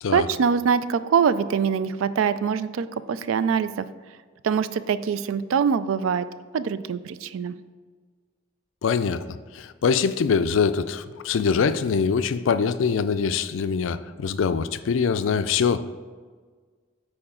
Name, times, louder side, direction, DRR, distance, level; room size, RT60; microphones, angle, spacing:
voice 1, 0.1-3.9 4.4-6.3 6.5-7.5, right 6 dB, 80° right, 14 dB, 0.3 m, -23 dB
voice 2, 8.8-15.9, left 6 dB, 75° left, 13 dB, 0.4 m, -23 dB
8.7 x 4.9 x 3.7 m, 1.5 s
head